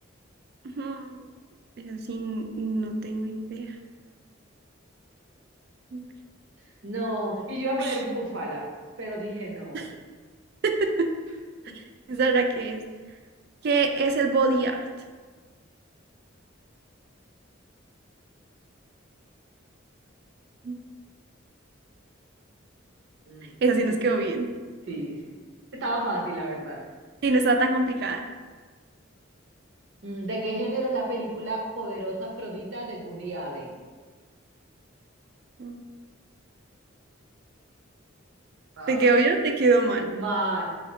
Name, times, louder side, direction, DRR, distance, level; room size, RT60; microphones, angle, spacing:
voice 1, 0.8-1.2 1.8-3.7 5.9-6.1 7.7-7.8 9.7-9.8 10.6-11.1 12.1-12.8 13.6-14.8 20.6-20.8 23.6-24.5 27.2-28.2 35.6-35.8 38.9-40.1, right 3 dB, 50° right, 6 dB, 0.3 m, -24 dB
voice 2, 6.8-8.7 9.0-10.0 23.3-23.5 23.8-23.9 24.9-25.1 25.7-26.8 30.0-33.7 38.8-39.0 40.0-40.6, right 1 dB, 70° right, -1 dB, 0.8 m, -31 dB
3.8 x 2.9 x 3.0 m, 1.4 s
head